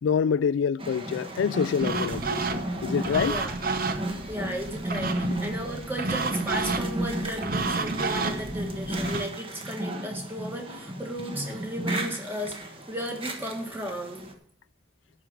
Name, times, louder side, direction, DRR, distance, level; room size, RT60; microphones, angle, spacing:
voice 1, 0.0-3.4 5.2-5.4, left 7 dB, 85° left, 0.3 m, -26 dB
sound 1, 0.8-14.3, right 1 dB, 30° right, 1.3 m, -34 dB
sound 2, 1.8-9.3, right 3 dB, 50° right, 0.9 m, -31 dB
voice 2, 3.2-3.6 4.3-12.6 12.9-14.3, equal, 10° right, 1.8 m, -34 dB
12.5 x 5.0 x 7.6 m
head